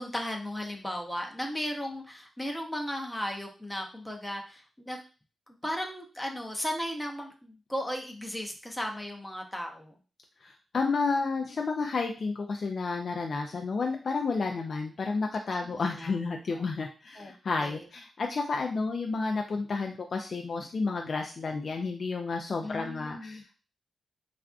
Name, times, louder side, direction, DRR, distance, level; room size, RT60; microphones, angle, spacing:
voice 1, 0.0-5.0 5.5-10.0 14.5-14.6 15.5-16.1 16.5-16.6 17.2-17.3 17.6-17.9 18.7-18.8 22.6-23.4, equal, 10° left, 2 dB, 0.6 m, -36 dB
voice 2, 10.4-23.6, left 4 dB, 55° left, 2 dB, 0.3 m, -31 dB
3.4 x 2.4 x 2.3 m, 0.35 s
cardioid pair, 90°, 0 cm